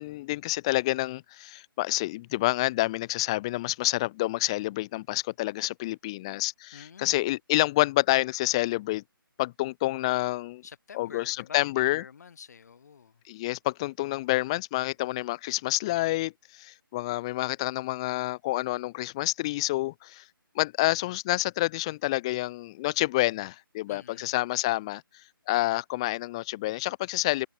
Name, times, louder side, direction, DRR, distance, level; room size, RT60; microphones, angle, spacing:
voice 1, 0.0-9.0 9.4-10.6 10.9-12.0 13.3-20.2 20.5-25.0 25.5-27.5, left 19 dB, 15° left, 0.7 m, -28 dB
voice 2, 6.7-7.3 10.6-13.2 23.9-24.4, left 6 dB, 45° left, 3.2 m, -47 dB
hypercardioid pair, 170°, 12 cm